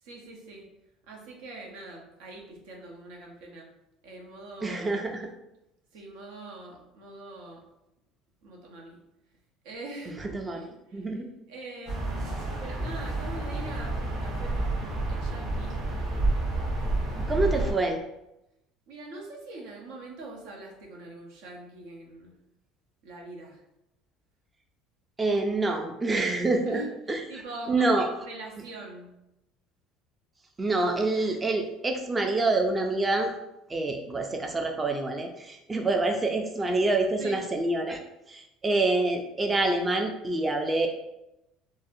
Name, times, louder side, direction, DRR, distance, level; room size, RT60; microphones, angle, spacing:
voice 1, 0.0-0.7 1.1-3.7 4.0-5.1 5.9-7.6 8.4-9.0 9.6-15.8 16.9-17.4 18.9-22.4 23.0-23.6 26.6-26.9 27.3-29.1 37.2-37.4, right 2 dB, 85° right, 0 dB, 0.8 m, -43 dB
voice 2, 4.6-5.3 10.3-10.6 10.9-11.3 17.2-18.0 25.2-26.8 27.1-27.2 27.7-28.1 30.6-33.3 33.7-38.0 38.3-40.9, right 2 dB, 20° right, 3 dB, 0.3 m, -26 dB
sound 1, 11.9-17.7, right 2 dB, 60° right, 1.4 m, -29 dB
3.8 x 2.0 x 2.6 m, 0.88 s
cardioid pair, 120°, 0 cm